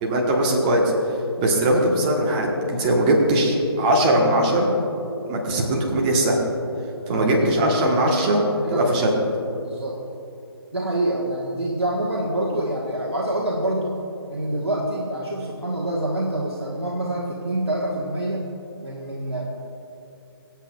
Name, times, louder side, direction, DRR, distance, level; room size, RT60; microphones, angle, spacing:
voice 1, 0.0-0.8 1.4-4.7 5.3-6.4 7.1-8.4 8.7-9.1, right 1 dB, 20° right, 0 dB, 1.3 m, -20 dB
voice 2, 7.0-7.8 8.6-9.0 9.6-10.0 10.7-14.0 14.3-18.5 18.8-19.4, right 1 dB, 70° right, -4 dB, 1.5 m, -26 dB
24.5 x 8.2 x 2.4 m, 2.9 s
figure-of-eight pair, 140°, 14 cm